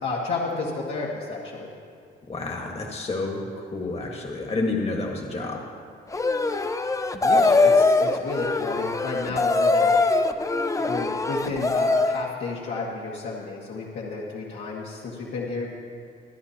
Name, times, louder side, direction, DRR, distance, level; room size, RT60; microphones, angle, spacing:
voice 1, 0.0-1.7 7.2-10.0 10.8-15.7, left 3 dB, 75° left, -5 dB, 1.8 m, -31 dB
voice 2, 2.3-5.6, left 3 dB, 30° left, 0 dB, 1.6 m, -29 dB
sound 1, 6.1-12.3, left 3 dB, 15° left, 0.6 m, -22 dB
24.5 x 9.7 x 2.9 m, 2.2 s
cardioid pair, 90°, 20 cm